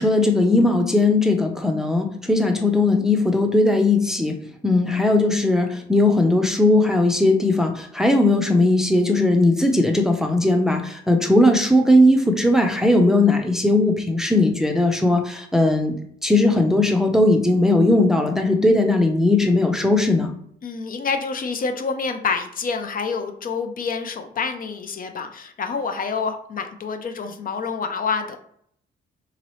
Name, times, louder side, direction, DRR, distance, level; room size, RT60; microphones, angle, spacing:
voice 1, 0.0-4.4 4.6-20.3, left 2 dB, ahead, 4 dB, 0.5 m, -18 dB
voice 2, 20.6-28.4, left 5 dB, 45° left, 7 dB, 0.5 m, -27 dB
3.8 x 2.9 x 3.0 m, 0.66 s
cardioid pair, 90°, 20 cm